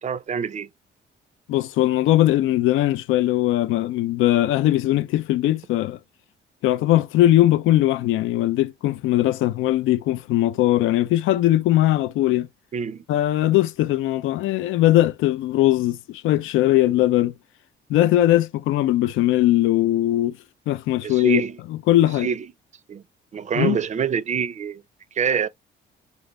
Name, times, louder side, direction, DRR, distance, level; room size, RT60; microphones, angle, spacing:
voice 1, 0.0-0.7 12.7-13.0 21.0-21.6 22.2-22.5 22.9-23.0 23.3-24.8 25.2-25.5, right 7 dB, 35° right, 0.4 m, -25 dB
voice 2, 1.5-6.0 6.6-12.5 13.1-17.3 17.9-20.3 20.7-21.4 21.7-22.3 23.6-23.8, left 14 dB, 85° left, 0.4 m, -20 dB
3.9 x 2.5 x 3.1 m
cardioid pair, 90°, 20 cm